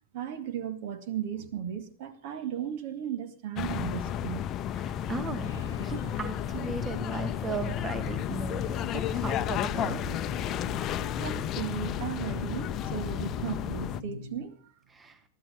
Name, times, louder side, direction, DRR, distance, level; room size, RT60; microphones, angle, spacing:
voice 1, 0.1-4.5 11.2-14.7, right 9 dB, 50° right, 1.9 m, -36 dB
sound 1, 3.6-14.0, left 10 dB, 30° left, 0.8 m, -32 dB
voice 2, 4.7-5.5 5.8-10.0 14.9-15.2, right 5 dB, 15° right, 1.3 m, -37 dB
sound 2, 5.1-14.5, left 4 dB, 75° left, 0.9 m, -43 dB
Bowed string instrument, 5.4-10.1, right 1 dB, 75° right, 5.2 m, -58 dB
21.5 x 14.0 x 3.6 m
figure-of-eight pair, 90°, 0 cm